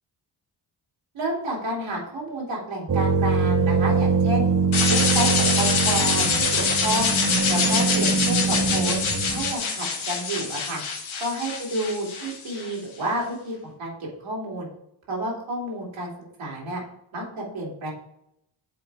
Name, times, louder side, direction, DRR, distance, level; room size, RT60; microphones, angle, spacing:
voice 1, 1.1-4.5 4.9-7.1 7.5-9.0 9.3-10.8 11.2-14.7 15.1-16.1 16.4-16.8 17.1-17.9, right 1 dB, 85° right, -3 dB, 2.8 m, -30 dB
sound 1, 2.9-9.5, right 4 dB, 40° right, 1.0 m, -23 dB
sound 2, 4.7-12.7, left 5 dB, 80° left, 1.3 m, -25 dB
7.7 x 4.0 x 4.7 m, 0.78 s
cardioid pair, 60°, 47 cm